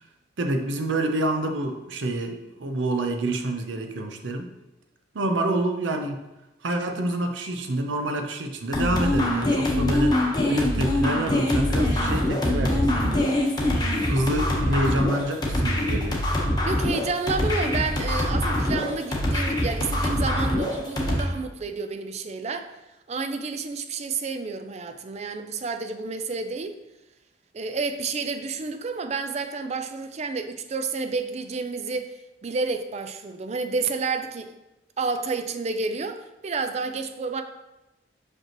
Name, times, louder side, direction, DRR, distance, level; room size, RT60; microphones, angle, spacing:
voice 1, 0.4-4.5 5.1-6.2 6.6-13.3 14.0-16.2, right 1 dB, 80° right, 5 dB, 0.7 m, -27 dB
sound 1, 8.7-21.2, left 1 dB, 20° left, 1.0 m, -24 dB
voice 2, 16.6-22.7 23.1-26.8 27.5-32.1 32.4-34.5 35.0-37.4, right 4 dB, 35° right, 7 dB, 0.4 m, -30 dB
6.0 x 5.3 x 2.9 m, 0.97 s
head